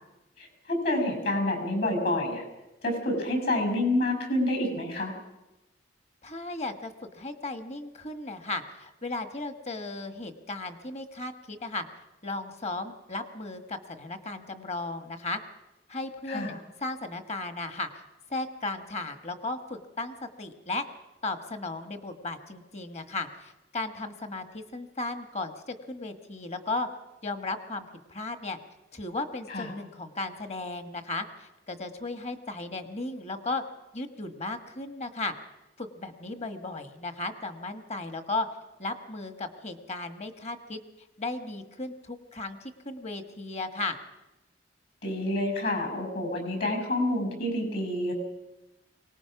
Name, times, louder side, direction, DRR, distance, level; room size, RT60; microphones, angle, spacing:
voice 1, 0.4-2.4 2.8-5.1 16.3-16.5 29.5-29.7 45.0-48.1, left 1 dB, 60° left, 5 dB, 6.5 m, -28 dB
voice 2, 6.2-11.8 12.2-15.4 15.9-16.5 16.8-17.9 18.3-20.8 21.2-26.9 27.2-28.6 28.9-33.6 33.9-35.3 35.8-38.5 38.8-40.8 41.2-44.0, left 2 dB, 40° left, 9 dB, 1.5 m, -35 dB
24.0 x 19.0 x 6.0 m, 1.0 s
head